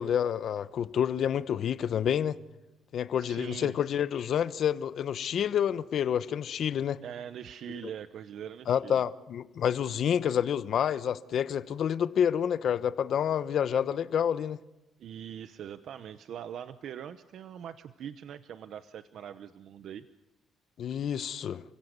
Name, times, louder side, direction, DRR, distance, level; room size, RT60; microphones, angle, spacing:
voice 1, 0.0-2.4 2.9-7.0 8.7-14.6 20.8-21.6, left 9 dB, 60° left, 1.0 m, -28 dB
voice 2, 3.2-3.8 7.0-9.0 15.0-20.1, right 9 dB, 65° right, 0.9 m, -42 dB
29.5 x 16.5 x 8.2 m
cardioid pair, 95°, 0 cm